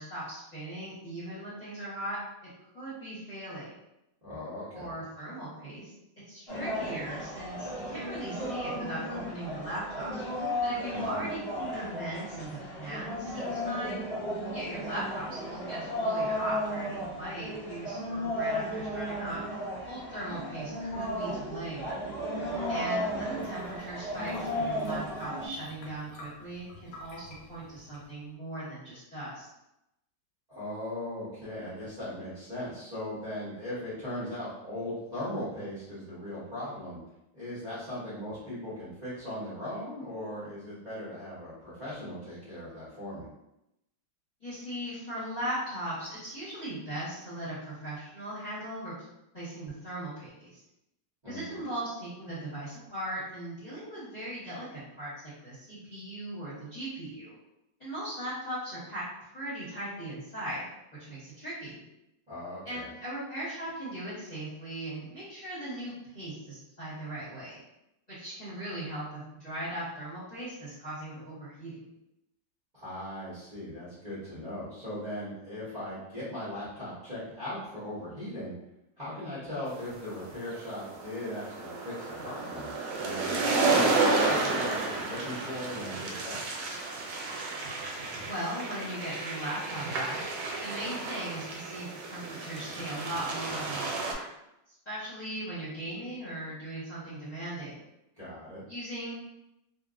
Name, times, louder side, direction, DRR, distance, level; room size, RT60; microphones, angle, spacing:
voice 1, 0.0-2.2 2.7-3.7 4.7-5.9 6.3-10.1 10.6-14.0 14.5-19.4 19.9-21.9 22.7-29.5 44.4-48.9 49.3-50.6 51.3-57.3 57.8-60.6 61.1-61.8 62.6-67.6 68.1-71.8 88.2-90.2 90.6-94.3 94.8-97.7 98.7-99.1, right 1 dB, 25° left, -12 dB, 1.1 m, -38 dB
voice 2, 4.2-4.9 10.9-11.3 22.4-23.2 30.5-37.0 37.3-43.3 51.2-51.6 62.3-62.9 72.7-78.5 79.0-86.4 98.2-98.6, left 1 dB, 30° right, -11 dB, 0.9 m, -39 dB
sound 1, 6.5-25.5, equal, 45° left, 0.8 m, -34 dB
sound 2, 23.3-28.3, left 1 dB, 70° left, 1.3 m, -49 dB
sound 3, 79.9-94.1, right 3 dB, 85° right, 1.3 m, -31 dB
3.0 x 2.4 x 2.5 m, 0.87 s
omnidirectional pair, 1.9 m